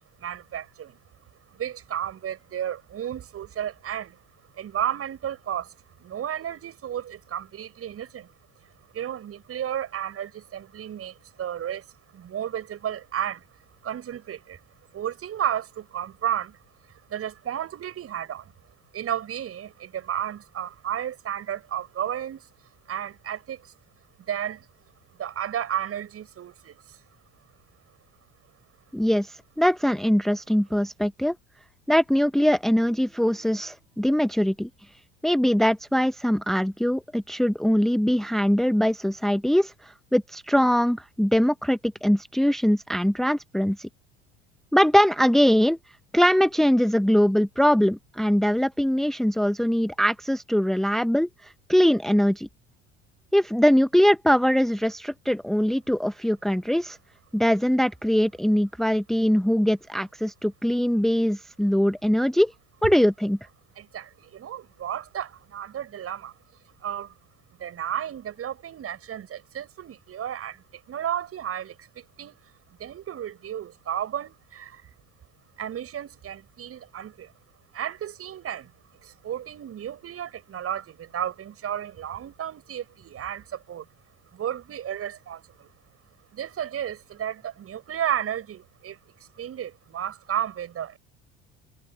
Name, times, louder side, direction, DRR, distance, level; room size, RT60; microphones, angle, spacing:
voice 1, 0.2-1.0 1.5-4.2 4.5-5.7 6.0-8.3 8.9-11.9 12.1-13.4 13.8-14.6 14.9-16.6 17.1-18.5 18.9-22.5 22.9-23.7 24.3-24.7 25.2-27.0 63.7-66.3 66.8-67.1 67.6-72.4 72.8-74.8 75.6-77.3 77.7-78.7 79.0-83.9 84.3-85.7 86.3-89.0 89.4-91.0, right 10 dB, 40° right, 6.6 m, -33 dB
voice 2, 28.9-31.3 31.9-34.7 35.2-43.9 44.7-45.8 46.1-52.5 53.3-57.0 57.3-62.5 62.8-63.4, equal, ahead, 1.2 m, -22 dB
figure-of-eight pair, 65°, 35 cm